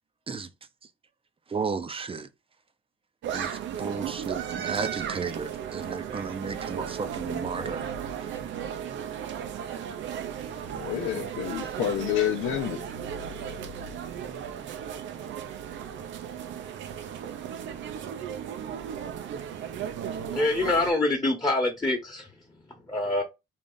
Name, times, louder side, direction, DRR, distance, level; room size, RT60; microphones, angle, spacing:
voice 1, 1.5-2.3 3.3-7.9 8.2-8.3, right 5 dB, 30° right, 0.6 m, -34 dB
sound 1, 3.2-20.9, right 8 dB, 75° right, 0.6 m, -35 dB
voice 2, 10.7-12.8, left 10 dB, 85° left, 0.6 m, -28 dB
voice 3, 20.3-22.3 22.9-23.2, left 2 dB, 15° left, 1.1 m, -25 dB
3.6 x 2.4 x 3.9 m
cardioid pair, 90°, 20 cm